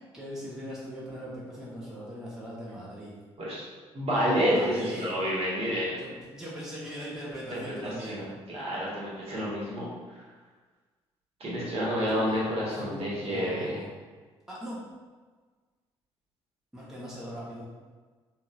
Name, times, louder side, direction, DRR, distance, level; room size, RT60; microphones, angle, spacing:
voice 1, 0.1-3.2 4.5-5.1 5.9-8.3 8.5-8.6 12.1-13.9 14.5-14.8 16.7-17.7, equal, 5° right, -7 dB, 1.0 m, -40 dB
voice 2, 3.9-6.0 7.5-10.2 11.4-13.8, equal, 45° right, -7 dB, 1.2 m, -29 dB
2.9 x 2.8 x 2.4 m, 1.4 s
figure-of-eight pair, 45°, 14 cm